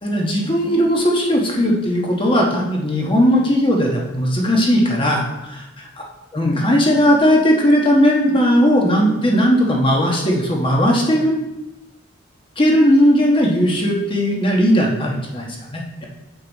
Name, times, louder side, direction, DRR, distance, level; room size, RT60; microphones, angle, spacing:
voice 1, 0.0-5.2 6.3-11.3 12.6-16.1, equal, 25° left, -1 dB, 1.2 m, -17 dB
7.8 x 5.3 x 4.0 m, 0.95 s
head